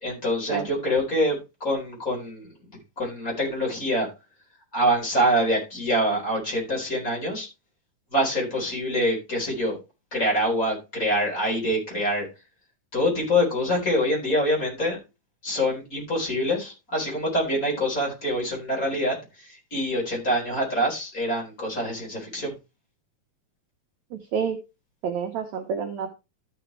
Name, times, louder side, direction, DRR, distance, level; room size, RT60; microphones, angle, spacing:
voice 1, 0.0-2.5 3.0-4.1 4.7-7.5 8.1-9.8 10.1-12.3 12.9-15.0 15.4-22.5, equal, 25° left, -2 dB, 4.2 m, -25 dB
voice 2, 25.0-26.1, right 6 dB, 70° right, 4 dB, 1.8 m, -28 dB
13.0 x 6.0 x 3.2 m, 0.26 s
omnidirectional pair, 4.2 m